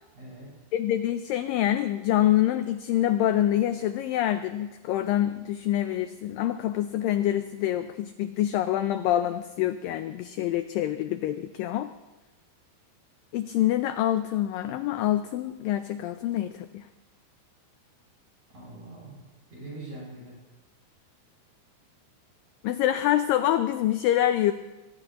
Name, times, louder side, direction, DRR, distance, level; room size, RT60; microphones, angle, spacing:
voice 1, 0.1-0.5 18.5-20.4, right 2 dB, 45° right, -5 dB, 7.6 m, -43 dB
voice 2, 0.7-11.9 13.3-16.8 22.6-24.5, left 12 dB, 90° left, 10 dB, 1.9 m, -26 dB
23.5 x 18.5 x 3.0 m, 1.1 s
omnidirectional pair, 4.7 m